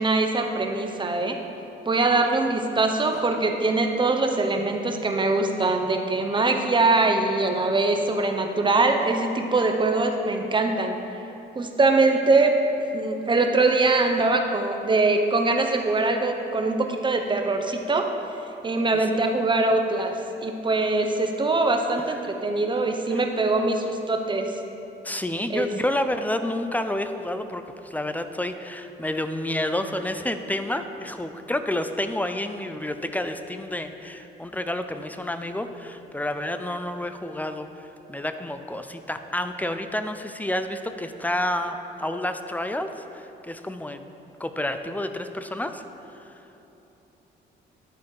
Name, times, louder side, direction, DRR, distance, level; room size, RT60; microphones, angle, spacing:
voice 1, 0.0-1.4 1.9-11.0 11.5-12.5 12.9-18.1 18.6-20.1 20.4-24.5 25.5-25.7, right 3 dB, 25° right, 4 dB, 0.7 m, -22 dB
voice 2, 25.0-44.0 44.4-45.8, left 1 dB, 10° left, 8 dB, 0.4 m, -29 dB
10.5 x 4.2 x 4.7 m, 3.0 s
cardioid pair, 90°, 20 cm